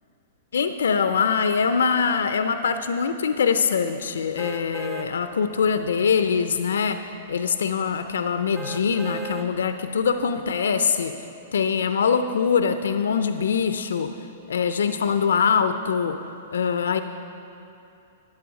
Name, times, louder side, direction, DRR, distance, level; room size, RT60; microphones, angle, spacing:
voice 1, 0.5-7.0 7.3-11.1 11.5-14.1 14.5-16.2 16.5-17.0, left 6 dB, 80° left, 9 dB, 0.4 m, -23 dB
sound 1, 4.4-5.1 5.6-5.7 8.5-9.5 10.0-10.1, right 3 dB, 20° right, 0.8 m, -36 dB
10.5 x 7.8 x 4.7 m, 2.7 s
hypercardioid pair, 120°, 0 cm